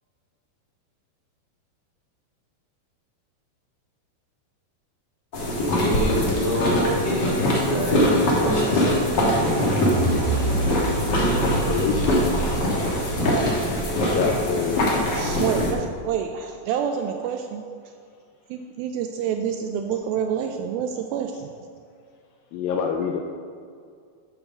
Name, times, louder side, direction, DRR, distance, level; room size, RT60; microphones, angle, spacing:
sound 1, 5.3-15.7, left 1 dB, 65° left, 1.0 m, -23 dB
voice 1, 5.6-9.0, equal, 40° left, -6 dB, 1.7 m, -27 dB
sound 2, 9.4-14.5, right 3 dB, 60° right, 2.7 m, -27 dB
voice 2, 11.6-12.5 14.0-15.0 22.5-23.2, left 6 dB, 80° left, 3 dB, 2.1 m, -27 dB
voice 3, 15.1-17.7 18.5-21.5, right 7 dB, 80° right, 5 dB, 2.2 m, -27 dB
8.9 x 6.1 x 6.5 m, 2.2 s
omnidirectional pair, 4.6 m